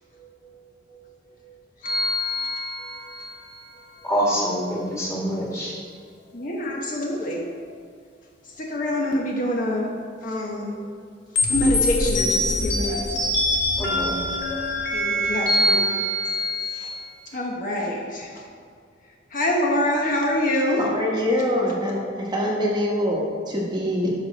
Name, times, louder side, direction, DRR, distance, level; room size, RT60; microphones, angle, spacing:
voice 1, 0.2-0.5 0.9-1.0 1.5-1.6 2.8-2.9 6.3-7.6 8.5-9.9 10.2-10.9 11.4-13.0 14.9-16.3 16.7-16.9 17.3-18.4 19.3-20.8, left 1 dB, 45° left, -2 dB, 1.1 m, -26 dB
sound 1, 1.8-3.4 11.4-17.1, left 1 dB, 65° left, 1.5 m, -24 dB
voice 2, 4.0-5.7 13.8-14.1, equal, 15° left, -5 dB, 2.1 m, -25 dB
voice 3, 20.8-24.1, equal, 25° right, -3 dB, 1.1 m, -24 dB
13.0 x 5.1 x 4.1 m, 2.1 s
head